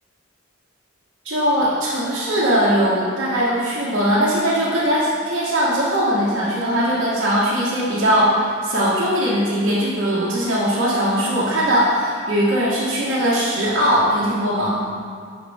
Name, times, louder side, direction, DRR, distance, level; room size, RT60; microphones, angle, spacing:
voice 1, 1.2-14.8, equal, 60° right, -9 dB, 1.5 m, -20 dB
9.6 x 5.9 x 3.6 m, 2.1 s
head